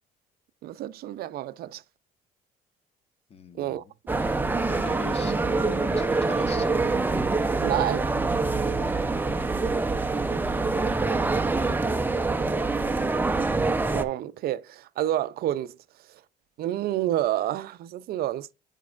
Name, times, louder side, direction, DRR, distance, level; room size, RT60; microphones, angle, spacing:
voice 1, 0.6-1.8 3.6-3.8 7.6-8.1 13.9-15.8 16.6-18.5, right 13 dB, 65° right, 0.5 m, -29 dB
voice 2, 3.3-3.9 4.2-4.3 4.7-5.3 6.0-6.7, left 5 dB, 35° left, 1.1 m, -41 dB
sound 1, 4.1-14.0, right 3 dB, 10° right, 0.7 m, -25 dB
9.4 x 5.2 x 2.4 m
cardioid pair, 110°, 17 cm